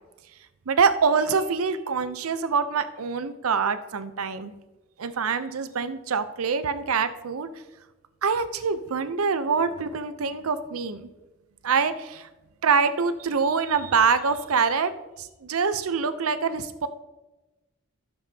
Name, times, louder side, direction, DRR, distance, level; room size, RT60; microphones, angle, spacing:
voice 1, 0.7-4.5 5.0-7.5 8.2-11.1 11.6-12.3 12.6-14.9 15.2-16.9, right 5 dB, 85° right, 11 dB, 0.6 m, -25 dB
13.5 x 7.0 x 2.8 m, 1.1 s
head